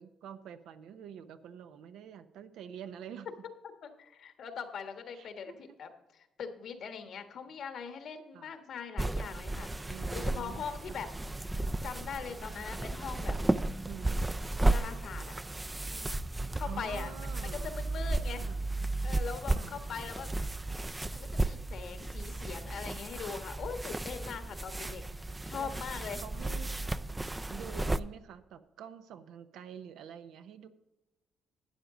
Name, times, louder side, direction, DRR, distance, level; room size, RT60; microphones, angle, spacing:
voice 1, 0.0-3.3 5.1-5.8 8.3-8.5 9.9-11.0 13.9-14.5 16.7-17.7 18.4-18.6 19.5-19.7 24.8-25.0 25.6-25.7 26.1-26.8 27.5-30.7, right 8 dB, 85° right, 10 dB, 0.8 m, -47 dB
voice 2, 3.8-11.1 11.8-13.4 14.7-15.4 15.9-16.2 16.5-17.1 17.5-18.5 19.0-20.3 21.1-25.0 25.4-26.2, left 6 dB, 70° left, 7 dB, 1.4 m, -41 dB
sound 1, 9.0-28.0, right 2 dB, 15° right, 0.4 m, -34 dB
12.0 x 9.0 x 3.8 m, 1.0 s
cardioid pair, 90°, 0 cm